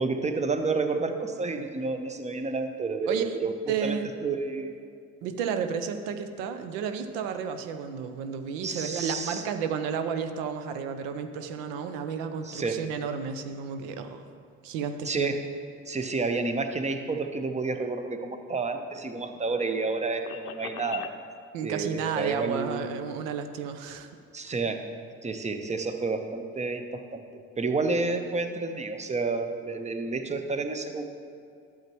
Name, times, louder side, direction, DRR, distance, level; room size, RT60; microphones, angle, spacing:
voice 1, 0.0-4.7 8.6-9.4 12.4-12.8 15.1-15.4 15.9-21.2 21.6-22.9 24.3-24.8 25.2-27.2 27.6-31.0, right 3 dB, 15° right, 7 dB, 0.7 m, -30 dB
voice 2, 3.7-4.1 5.2-14.2 14.6-15.3 21.5-24.1 24.4-24.5, right 6 dB, 70° right, 8 dB, 0.7 m, -32 dB
sound 1, 18.1-21.2, left 11 dB, 75° left, 0.6 m, -43 dB
11.5 x 7.4 x 3.1 m, 2.4 s
hypercardioid pair, 55°, 40 cm